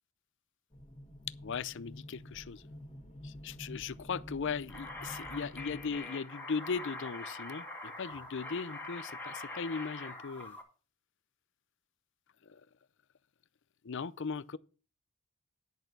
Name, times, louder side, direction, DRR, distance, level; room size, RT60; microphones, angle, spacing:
sound 1, 0.7-6.0, equal, 25° left, 2.2 m, -48 dB
voice 1, 1.4-2.6 3.2-10.6 12.4-12.6 13.8-14.6, left 5 dB, 55° left, 0.5 m, -38 dB
sound 2, 4.7-10.6, left 2 dB, 10° left, 2.0 m, -44 dB
10.0 x 6.6 x 5.9 m
head